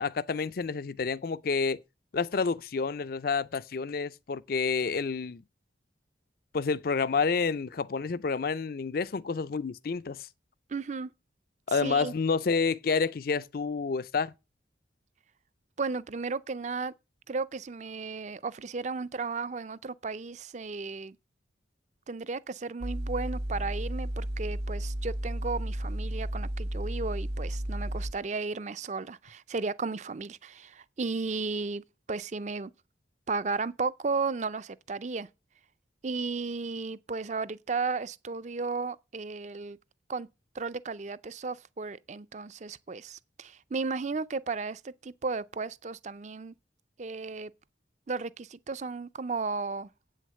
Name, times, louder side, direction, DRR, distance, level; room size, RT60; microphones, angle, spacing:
voice 1, 0.0-1.8 2.1-5.4 6.5-10.3 11.7-14.3, left 5 dB, 55° left, 0.4 m, -29 dB
voice 2, 10.7-11.1 11.7-12.1 15.8-16.9 17.3-21.2 22.1-32.7 33.3-35.3 36.0-39.8 40.1-40.3 40.5-46.5 47.0-47.5 48.1-49.9, right 4 dB, 40° right, 0.5 m, -34 dB
sound 1, 22.8-28.1, right 1 dB, 60° right, 1.2 m, -33 dB
8.5 x 6.5 x 7.5 m
head